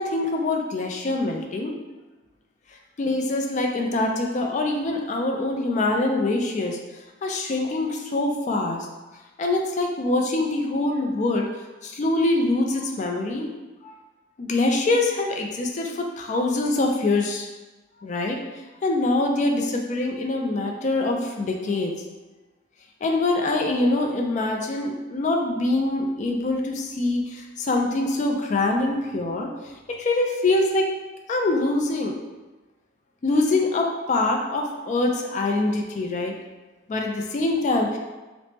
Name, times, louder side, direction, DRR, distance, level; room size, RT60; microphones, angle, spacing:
voice 1, 0.0-1.7 3.0-6.8 7.2-8.9 9.4-11.5 11.8-13.5 13.8-13.9 14.4-17.5 18.0-18.4 18.8-21.9 23.0-29.5 29.9-30.9 31.3-32.2 33.2-36.3 36.9-38.0, left 2 dB, 40° left, 2 dB, 0.3 m, -24 dB
3.2 x 2.0 x 2.9 m, 1.2 s
head